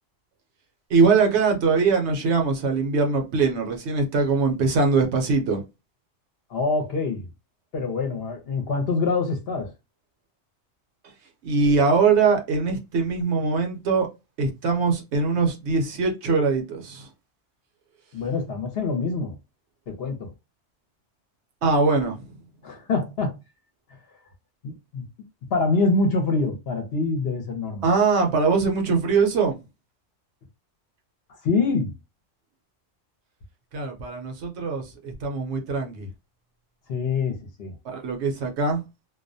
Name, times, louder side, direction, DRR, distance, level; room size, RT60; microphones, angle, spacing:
voice 1, 0.9-5.7 11.0-14.1 14.4-17.1 18.1-18.2 21.6-22.4 27.8-29.6 33.7-36.1 37.8-38.8, right 4 dB, 65° right, 0.8 m, -22 dB
voice 2, 6.5-7.2 7.7-9.7 18.1-19.4 19.9-20.3 22.6-23.4 24.6-25.1 25.5-27.8 31.4-31.9 36.9-37.7, left 3 dB, 60° left, 0.8 m, -25 dB
2.3 x 2.1 x 2.5 m
omnidirectional pair, 1.3 m